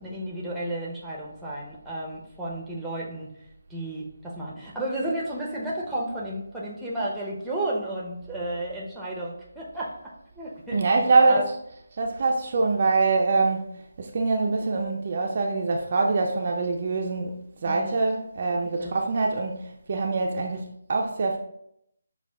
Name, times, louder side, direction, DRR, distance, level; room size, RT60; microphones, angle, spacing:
voice 1, 0.0-3.3 3.7-10.8 11.1-11.4 17.6-18.2 18.8-18.9 20.3-20.4, right 1 dB, 5° right, 0.6 m, -33 dB
voice 2, 10.7-11.6 11.9-21.4, right 3 dB, 40° right, 0.3 m, -24 dB
5.8 x 2.2 x 2.2 m
figure-of-eight pair, 155°, 0 cm